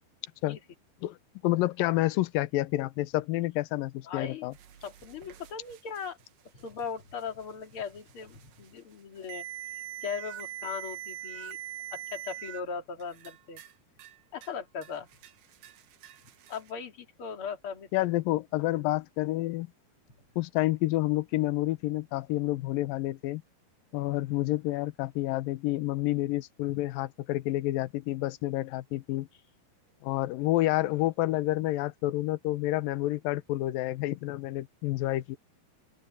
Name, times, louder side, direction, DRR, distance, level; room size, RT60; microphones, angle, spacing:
voice 1, 1.4-4.5 17.9-19.7 20.4-23.4 23.9-29.3 30.0-35.4, left 17 dB, 75° left, 2.3 m, -29 dB
voice 2, 4.1-4.5 4.8-6.2 6.5-9.4 9.7-11.6 11.9-13.6 14.3-15.1 16.5-17.9, left 6 dB, 35° left, 3.3 m, -38 dB
sound 1, 4.5-12.6 13.0-13.7 14.0-14.5 14.8-16.7, right 12 dB, 70° right, 3.1 m, -44 dB
open air
omnidirectional pair, 4.8 m